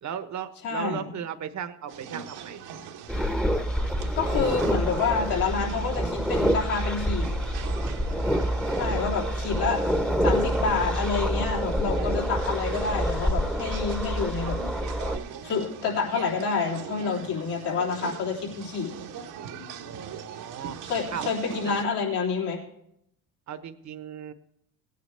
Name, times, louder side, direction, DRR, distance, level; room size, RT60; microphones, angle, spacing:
voice 1, 0.0-2.6 8.1-8.2 19.8-20.8 21.1-21.3 21.6-21.8 23.5-24.3, right 8 dB, 40° right, 9 dB, 1.2 m, -36 dB
voice 2, 0.6-1.1 4.1-7.3 8.7-9.8 10.2-14.6 15.4-18.9 20.8-22.6, left 5 dB, 70° left, -2 dB, 3.6 m, -28 dB
sound 1, 1.9-21.8, right 8 dB, 65° right, 1.4 m, -41 dB
sound 2, 3.1-15.2, equal, ahead, 1.1 m, -27 dB
18.0 x 9.5 x 3.4 m, 0.75 s
hypercardioid pair, 65°, 42 cm